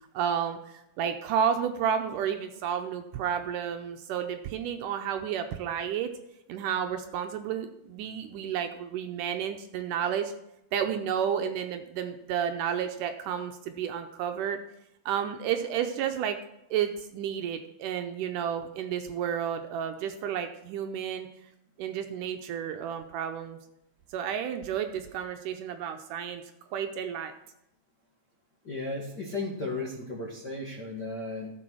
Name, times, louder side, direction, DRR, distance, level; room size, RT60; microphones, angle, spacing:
voice 1, 0.1-6.1 6.5-10.3 10.7-14.6 15.1-16.4 16.7-21.3 21.8-23.6 24.1-26.4 26.7-27.3, right 8 dB, 80° right, 6 dB, 2.1 m, -31 dB
voice 2, 28.6-31.5, left 2 dB, 45° left, -1 dB, 1.5 m, -35 dB
14.0 x 6.9 x 6.2 m, 0.83 s
omnidirectional pair, 4.1 m